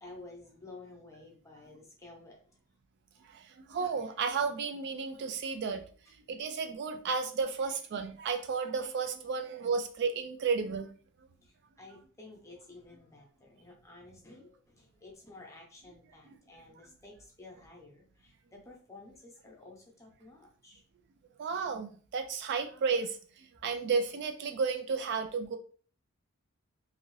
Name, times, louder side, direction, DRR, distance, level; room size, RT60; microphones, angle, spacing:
voice 1, 0.0-2.4 3.1-3.3 11.4-11.5 11.8-20.8, left 2 dB, 15° left, -1 dB, 0.8 m, -52 dB
voice 2, 3.3-5.8 6.3-10.9 21.4-25.6, right 5 dB, 55° right, 7 dB, 0.3 m, -33 dB
2.6 x 2.5 x 3.1 m, 0.43 s
head